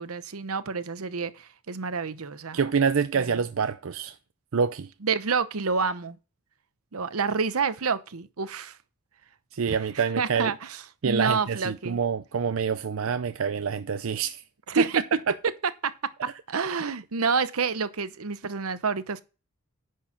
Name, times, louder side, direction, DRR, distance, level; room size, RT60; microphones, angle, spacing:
voice 1, 0.0-2.6 5.0-6.2 6.9-8.8 9.7-12.0 14.7-15.0 15.8-19.2, right 5 dB, 90° right, 0.9 m, -28 dB
voice 2, 2.5-4.2 4.5-4.9 9.5-10.5 11.0-14.4 14.8-14.9, right 6 dB, 70° right, 0.5 m, -26 dB
10.0 x 4.7 x 5.9 m
head